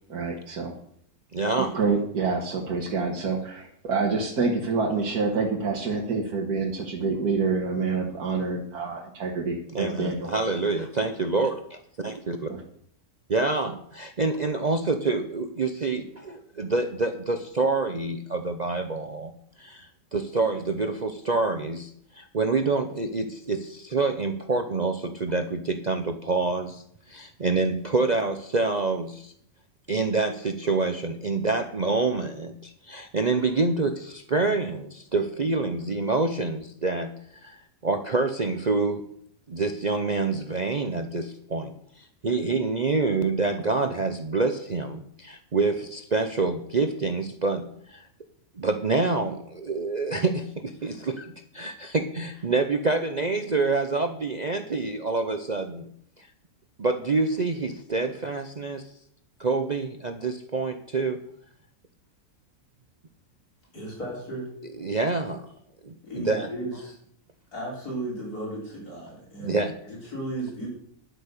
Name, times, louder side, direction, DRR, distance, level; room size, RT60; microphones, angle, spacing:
voice 1, 0.1-0.7 1.6-10.4 12.5-12.6, right 4 dB, 90° right, -1 dB, 1.9 m, -27 dB
voice 2, 1.3-1.7 9.7-12.5 13.3-19.3 19.6-29.3 29.9-39.0 39.5-48.1 48.6-55.9 56.8-58.9 59.4-61.2 64.8-65.5 65.8-66.5 69.4-69.7, right 3 dB, 40° right, 6 dB, 0.7 m, -27 dB
voice 3, 63.7-64.5 66.0-66.9 67.5-70.7, right 1 dB, 85° left, -4 dB, 5.0 m, -35 dB
11.0 x 8.4 x 6.7 m, 0.66 s
omnidirectional pair, 1.6 m